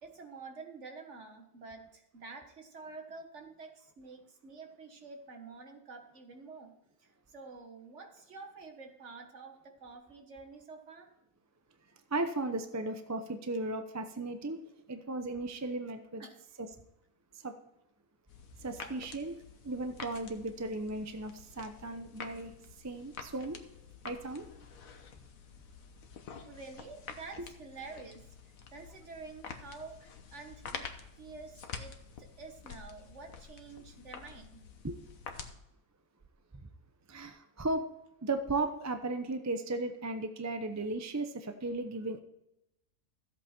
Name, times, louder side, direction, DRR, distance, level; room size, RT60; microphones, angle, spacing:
voice 1, 0.0-6.7 7.0-11.1 16.2-16.3 18.7-19.0 26.4-28.3 28.7-30.9 31.2-34.6, right 4 dB, 55° right, 4 dB, 1.7 m, -49 dB
voice 2, 12.1-14.6 14.9-16.2 17.4-17.5 18.6-19.4 19.6-22.5 22.8-23.6 24.0-24.5 27.4-27.5 34.8-35.0 37.1-37.8 38.2-42.2, right 2 dB, 15° right, 8 dB, 0.5 m, -35 dB
sound 1, 18.3-35.5, left 6 dB, 70° left, 1.5 m, -48 dB
14.0 x 8.1 x 4.4 m, 0.87 s
omnidirectional pair, 1.5 m